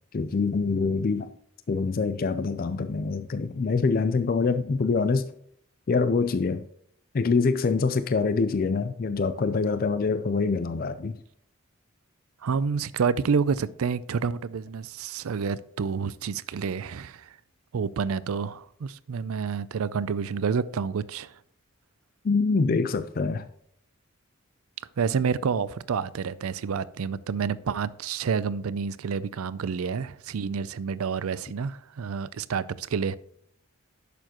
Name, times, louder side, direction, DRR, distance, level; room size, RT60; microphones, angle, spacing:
voice 1, 0.1-1.3 1.7-5.3 5.9-6.7 7.1-11.2 22.2-23.5, left 4 dB, 40° left, 0.4 m, -25 dB
voice 2, 12.4-17.4 17.7-21.4 25.0-33.2, right 6 dB, 75° right, 0.4 m, -29 dB
10.5 x 6.9 x 3.0 m
head